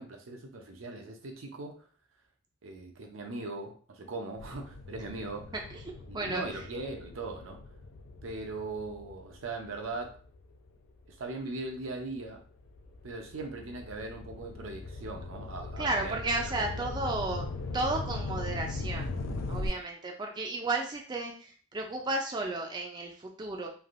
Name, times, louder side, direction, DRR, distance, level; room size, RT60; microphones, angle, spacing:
voice 1, 0.0-1.9 2.6-5.5 6.1-7.6 8.2-10.2 11.2-12.4 13.0-16.3 16.6-16.9 19.7-19.8, right 3 dB, 75° right, 4 dB, 0.6 m, -40 dB
sound 1, 4.4-11.1 11.7-19.7, left 2 dB, 65° left, 0.4 m, -40 dB
voice 2, 15.8-17.4 17.7-19.1 19.5-23.7, right 2 dB, 20° right, 1 dB, 0.4 m, -33 dB
3.2 x 2.5 x 2.5 m, 0.43 s
head